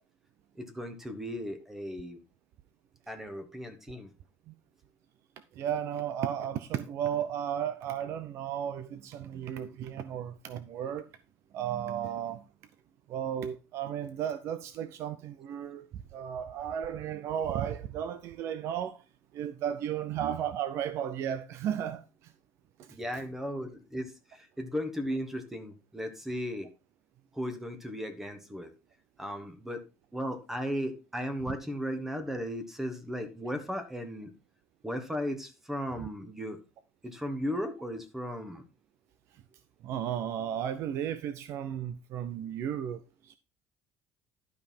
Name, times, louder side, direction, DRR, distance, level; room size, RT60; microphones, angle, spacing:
voice 1, 0.5-2.2 3.1-4.1 22.9-26.7 27.3-28.7 29.2-29.8 30.1-34.3 34.8-36.6 37.0-38.6, equal, 5° right, 1.2 m, -36 dB
voice 2, 5.6-11.1 11.5-12.4 13.1-15.9 16.1-19.0 19.3-22.3 22.8-22.9 36.0-36.1 39.8-43.4, right 9 dB, 50° right, 0.6 m, -34 dB
11.5 x 5.4 x 4.4 m
cardioid pair, 165°, 6 cm